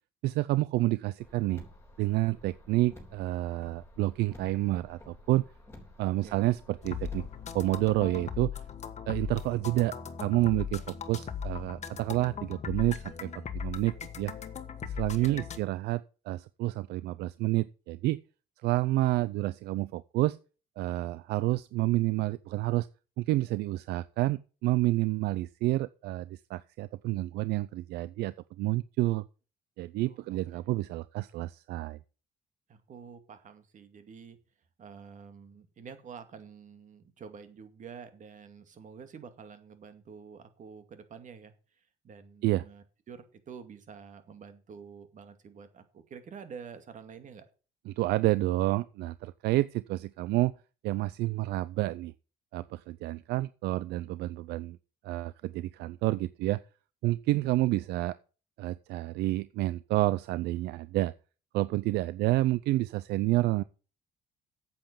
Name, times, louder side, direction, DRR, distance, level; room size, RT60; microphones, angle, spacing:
voice 1, 0.2-1.6 2.0-5.5 6.0-7.3 7.5-8.5 9.1-14.3 14.8-18.2 18.6-20.4 20.8-22.9 23.2-29.2 29.8-32.0 42.4-42.6 47.9-50.5 50.8-52.1 52.5-54.8 55.0-56.6 57.0-58.2 58.6-61.1 61.5-63.6, right 18 dB, 80° right, 0.5 m, -29 dB
Car, 1.2-7.5, left 1 dB, 15° left, 3.5 m, -52 dB
sound 1, 6.8-15.6, left 7 dB, 40° left, 1.4 m, -38 dB
voice 2, 15.1-15.4 30.0-30.6 32.7-34.4 34.8-47.5, right 6 dB, 50° right, 2.3 m, -48 dB
8.7 x 8.0 x 7.3 m
cardioid pair, 110°, 17 cm